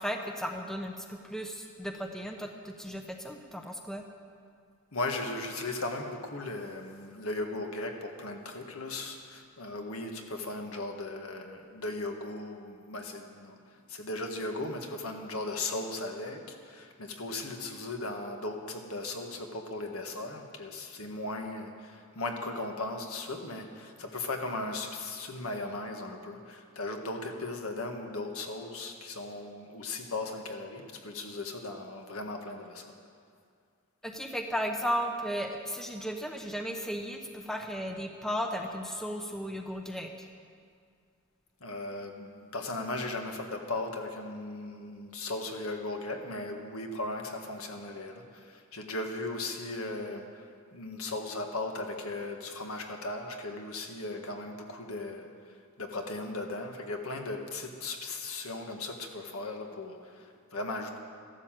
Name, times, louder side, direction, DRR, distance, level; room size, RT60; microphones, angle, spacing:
voice 1, 0.0-4.0 34.0-40.3, equal, ahead, 3 dB, 0.8 m, -35 dB
voice 2, 4.9-32.9 41.6-61.0, left 2 dB, 70° left, 3 dB, 1.7 m, -37 dB
14.5 x 12.0 x 7.6 m, 2.2 s
head